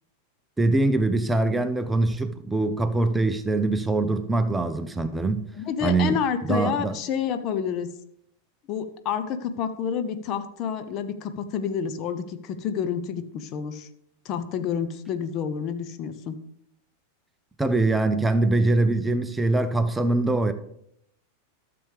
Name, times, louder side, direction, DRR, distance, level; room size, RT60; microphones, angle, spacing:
voice 1, 0.6-5.5 5.8-6.2 6.5-6.9 17.6-20.5, right 2 dB, 10° right, 0.6 m, -23 dB
voice 2, 5.6-7.9 8.7-13.9 14.2-16.4, left 7 dB, 35° left, 0.7 m, -29 dB
13.0 x 6.9 x 3.4 m
figure-of-eight pair, 90°, 0 cm